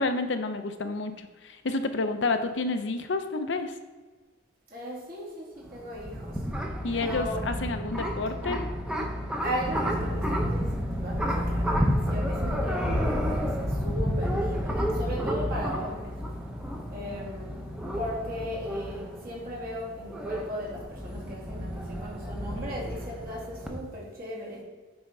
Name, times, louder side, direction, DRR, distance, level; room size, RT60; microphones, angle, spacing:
voice 1, 0.0-3.8 6.8-8.6 22.5-22.7, left 3 dB, 70° left, 8 dB, 0.7 m, -30 dB
voice 2, 4.7-6.5 6.9-7.6 9.4-16.2 16.9-24.6, equal, 50° right, -5 dB, 2.4 m, -37 dB
sound 1, 5.7-23.8, equal, 5° right, 0.8 m, -30 dB
8.7 x 3.5 x 5.4 m, 1.3 s
head